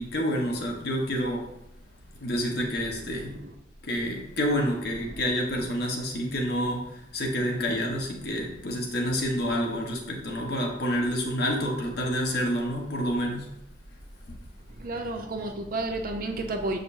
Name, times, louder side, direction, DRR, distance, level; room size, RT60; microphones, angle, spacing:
voice 1, 0.0-1.4 2.2-3.3 3.8-13.5, equal, 60° left, 1.1 m, -28 dB
voice 2, 2.9-3.6 4.9-5.2 14.7-16.8, right 2 dB, 50° right, 0.7 m, -32 dB
7.2 x 5.2 x 2.6 m
head